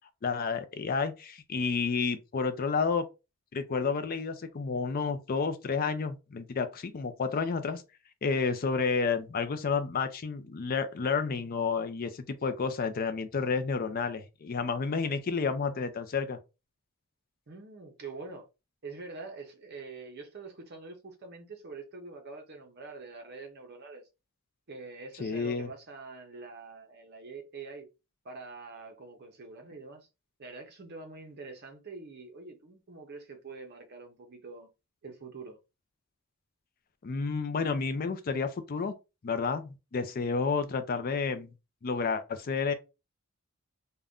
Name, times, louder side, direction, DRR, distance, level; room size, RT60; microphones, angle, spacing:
voice 1, 0.2-3.0 3.5-7.8 8.2-16.4 25.2-25.7 37.0-39.0 39.2-41.5 41.8-42.7, left 5 dB, 40° left, 0.4 m, -30 dB
voice 2, 17.5-18.5 18.8-24.0 24.7-27.9 28.2-30.1 30.4-34.7 35.0-35.6, right 3 dB, 45° right, 0.6 m, -45 dB
2.5 x 2.2 x 3.5 m
head